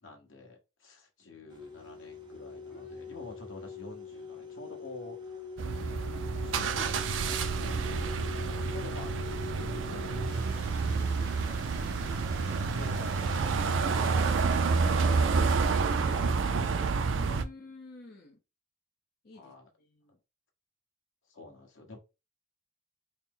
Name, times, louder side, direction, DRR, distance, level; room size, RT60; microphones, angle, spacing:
voice 1, 0.0-5.5 6.4-16.6 17.5-17.7 19.3-19.7 21.3-22.0, left 3 dB, 80° left, 1.2 m, -49 dB
sound 1, 1.5-10.6, left 4 dB, 25° right, 0.7 m, -43 dB
voice 2, 2.7-3.3 7.7-7.8 14.8-16.8 17.1-18.4 19.2-19.5 19.8-20.2, left 2 dB, 50° left, 0.6 m, -51 dB
sound 2, 5.6-17.4, right 4 dB, 75° right, 0.4 m, -29 dB
sound 3, 10.3-16.0, right 2 dB, 55° right, 1.3 m, -48 dB
4.2 x 2.0 x 3.7 m
head